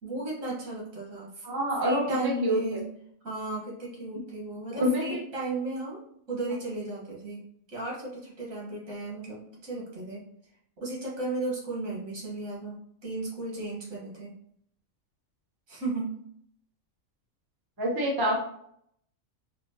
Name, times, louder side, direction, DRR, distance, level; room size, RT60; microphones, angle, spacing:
voice 1, 0.0-1.4 1.8-2.8 3.2-6.0 6.3-7.4 7.7-10.2 10.8-14.3 15.7-16.1, right 2 dB, 70° right, -4 dB, 1.9 m, -35 dB
voice 2, 1.4-2.8 4.7-5.2 17.8-18.4, equal, 20° right, -2 dB, 0.7 m, -27 dB
4.4 x 2.8 x 2.9 m, 0.68 s
omnidirectional pair, 1.5 m